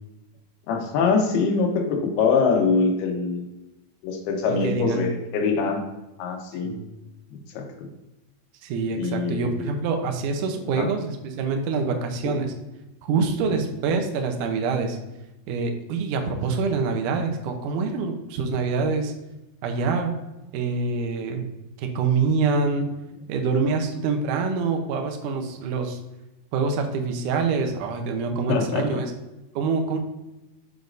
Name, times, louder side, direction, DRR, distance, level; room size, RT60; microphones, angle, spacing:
voice 1, 0.7-3.5 4.0-5.8 6.2-6.7 7.3-7.9 9.0-9.7 10.8-10.9 13.5-13.6 28.5-29.0, left 4 dB, 80° left, 3 dB, 2.9 m, -24 dB
voice 2, 4.6-5.1 6.6-6.9 8.6-12.5 13.0-15.0 15.5-19.1 19.6-20.1 20.5-21.5 21.8-22.9 23.3-26.0 26.5-29.1 29.6-30.0, right 4 dB, 75° right, 4 dB, 1.9 m, -25 dB
7.3 x 6.3 x 2.6 m, 1.0 s
omnidirectional pair, 4.5 m